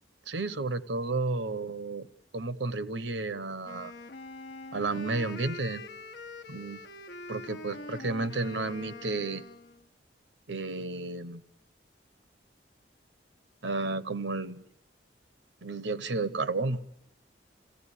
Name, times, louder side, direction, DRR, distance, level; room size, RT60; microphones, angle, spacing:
voice 1, 0.3-2.1 2.3-3.9 4.7-5.8 6.5-6.8 7.3-9.4 10.5-11.4 13.6-14.6 15.6-16.8, right 3 dB, 85° right, 1.0 m, -32 dB
Wind instrument woodwind instrument, 3.6-9.8, left 2 dB, 75° left, 1.0 m, -44 dB
29.5 x 16.0 x 10.0 m
head